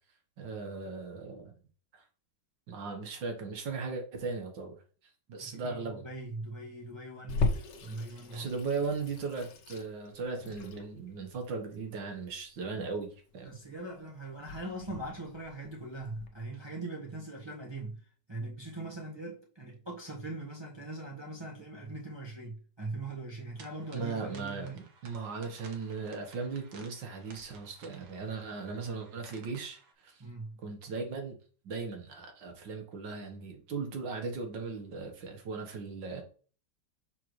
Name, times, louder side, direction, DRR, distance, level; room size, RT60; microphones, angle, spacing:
voice 1, 0.4-1.5 1.9-2.0 2.7-4.7 5.3-6.1 8.1-13.6 23.9-30.2 30.6-31.4 31.6-36.2, right 4 dB, 85° right, 2.0 m, -38 dB
voice 2, 5.4-7.5 7.8-8.5 13.4-18.0 18.3-24.8 30.2-30.6, right 2 dB, 15° right, 1.3 m, -41 dB
Water tap faucet / Sink (filling or washing), 7.3-16.3, left 3 dB, 75° left, 1.6 m, -38 dB
sound 1, 23.6-29.9, right 4 dB, 65° right, 1.6 m, -56 dB
6.4 x 4.6 x 3.2 m
omnidirectional pair, 1.9 m